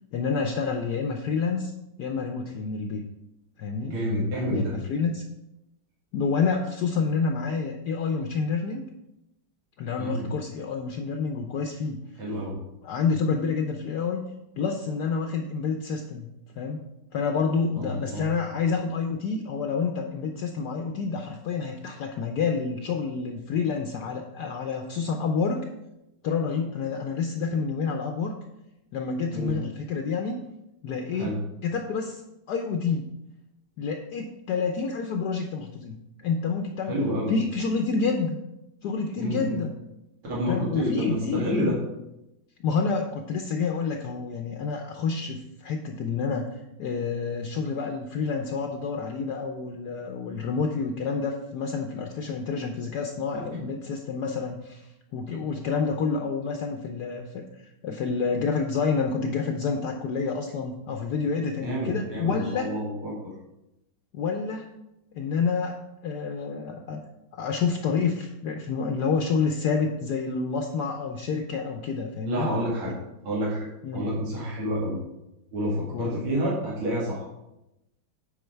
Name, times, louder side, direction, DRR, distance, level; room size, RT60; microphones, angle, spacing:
voice 1, 0.1-1.7 2.0-3.0 3.6-3.9 4.5-5.2 6.1-8.8 9.8-12.0 12.8-14.2 14.6-16.3 16.5-16.8 17.1-25.7 26.2-28.3 28.9-30.4 30.8-31.3 31.6-32.2 32.5-33.1 33.8-36.0 36.2-37.0 37.3-38.4 38.8-39.7 40.5-41.7 42.6-46.5 46.8-57.4 57.8-62.7 64.1-64.7 65.1-65.8 66.0-67.0 67.3-72.5 73.8-74.0 75.9-76.1, left 5 dB, 70° left, 4 dB, 1.0 m, -28 dB
voice 2, 3.8-4.7 10.0-10.3 12.2-12.6 17.7-18.3 29.3-29.5 31.1-31.4 36.9-37.3 39.2-39.6 40.3-41.8 61.6-63.1 72.3-72.9 73.2-73.7 73.9-75.0 75.5-77.3, equal, 90° right, -6 dB, 3.0 m, -28 dB
8.6 x 5.1 x 4.5 m, 0.91 s
omnidirectional pair, 2.2 m